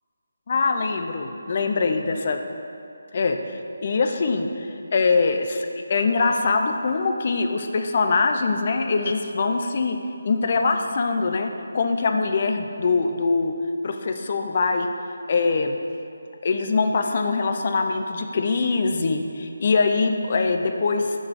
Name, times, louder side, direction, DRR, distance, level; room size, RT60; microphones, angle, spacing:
voice 1, 0.5-2.4 3.1-10.0 10.2-13.5 13.8-14.9 15.3-15.8 16.4-21.1, left 4 dB, 35° left, 6 dB, 0.5 m, -23 dB
6.9 x 6.3 x 5.8 m, 2.5 s
figure-of-eight pair, 175°, 0 cm